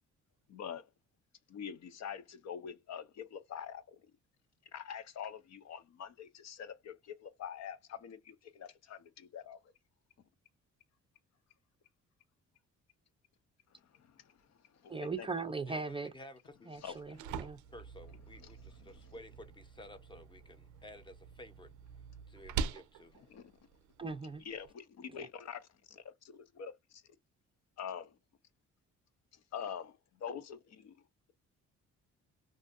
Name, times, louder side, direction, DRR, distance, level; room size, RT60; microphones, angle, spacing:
voice 1, 0.5-0.8 1.5-4.0 4.7-9.6 14.8-15.3 16.8-17.2 23.3-23.4 24.4-26.7 27.8-28.1 29.5-29.9 30.2-30.9, left 8 dB, 60° left, 0.6 m, -45 dB
voice 2, 14.9-16.1 16.7-17.6 24.0-24.4 25.2-25.3, right 4 dB, 20° right, 0.4 m, -39 dB
voice 3, 15.7-16.7 17.7-21.7 22.3-23.2, left 1 dB, 15° left, 0.7 m, -53 dB
sound 1, 16.8-24.7, right 6 dB, 80° right, 0.5 m, -45 dB
2.6 x 2.5 x 2.4 m
cardioid pair, 90°, 30 cm